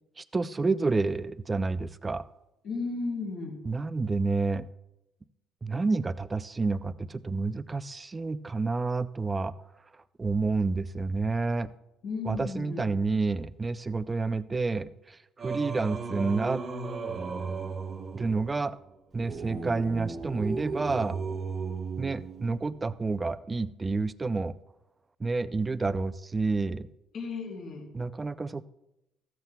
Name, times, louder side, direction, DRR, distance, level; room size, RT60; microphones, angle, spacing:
voice 1, 0.2-2.2 3.7-4.7 5.6-9.5 10.2-11.7 12.2-16.6 18.1-18.8 19.1-21.2 22.0-24.5 25.2-26.9 27.9-28.6, right 3 dB, 15° right, 14 dB, 0.3 m, -29 dB
voice 2, 2.6-3.6 12.0-12.9 27.1-27.8, left 4 dB, 55° left, -2 dB, 3.6 m, -34 dB
Singing, 15.4-22.8, right 4 dB, 30° right, 1.0 m, -36 dB
14.5 x 13.5 x 2.2 m, 0.89 s
cardioid pair, 160°, 0 cm